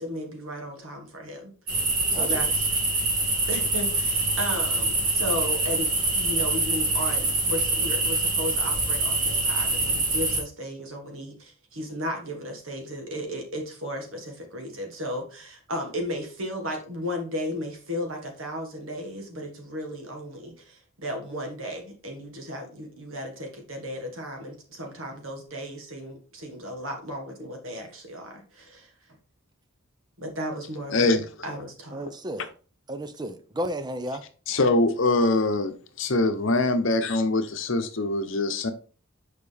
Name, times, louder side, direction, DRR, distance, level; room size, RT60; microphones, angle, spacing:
voice 1, 0.0-1.5 2.1-2.7 3.5-27.3 27.6-28.9 30.2-31.1 31.4-32.1, equal, 70° right, 1.8 m, -35 dB
sound 1, 1.7-10.4, right 2 dB, 40° right, 2.4 m, -25 dB
voice 2, 31.9-32.5 32.9-34.2, equal, 20° right, 0.6 m, -33 dB
voice 3, 34.5-35.7 36.0-38.7, left 2 dB, 65° left, 0.9 m, -23 dB
6.6 x 5.0 x 3.5 m
head